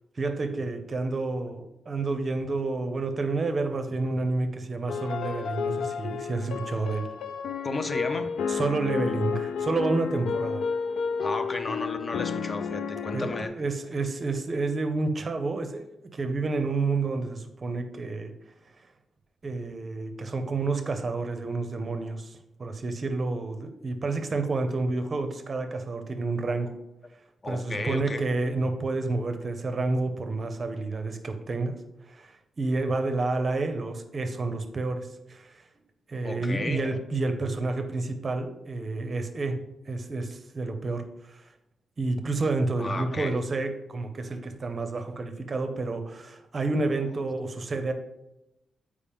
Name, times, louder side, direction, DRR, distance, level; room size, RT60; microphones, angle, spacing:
voice 1, 0.2-7.1 8.5-10.6 13.1-15.8 16.1-18.3 19.4-26.7 27.5-31.7 32.1-32.3 32.6-35.5 36.1-39.6 39.9-41.0 41.3-41.4 42.0-47.9, right 3 dB, 30° right, 8 dB, 0.6 m, -29 dB
sound 1, 4.9-13.5, left 6 dB, 75° left, 0.5 m, -31 dB
voice 2, 7.6-8.3 11.2-13.6 27.4-28.3 36.2-37.0 42.8-43.4, left 2 dB, 25° left, 9 dB, 0.5 m, -33 dB
8.6 x 4.8 x 3.5 m, 0.91 s
wide cardioid pair, 175°, 0 cm